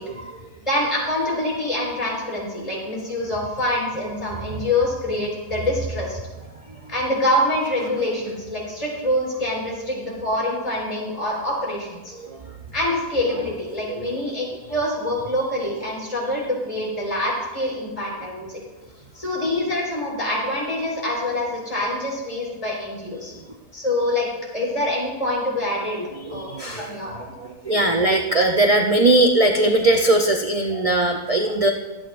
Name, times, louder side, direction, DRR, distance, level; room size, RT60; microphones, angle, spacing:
voice 1, 0.0-0.5 4.5-4.7 6.7-6.9 12.1-12.6 13.4-13.5 13.9-14.2 26.0-31.7, right 2 dB, 40° right, 2 dB, 0.5 m, -21 dB
voice 2, 0.7-6.2 6.9-12.1 12.7-18.6 19.1-23.3 23.7-24.3 24.5-26.0 26.3-27.1, left 1 dB, 20° left, -4 dB, 4.4 m, -25 dB
23.5 x 8.7 x 2.5 m, 1.2 s
omnidirectional pair, 1.6 m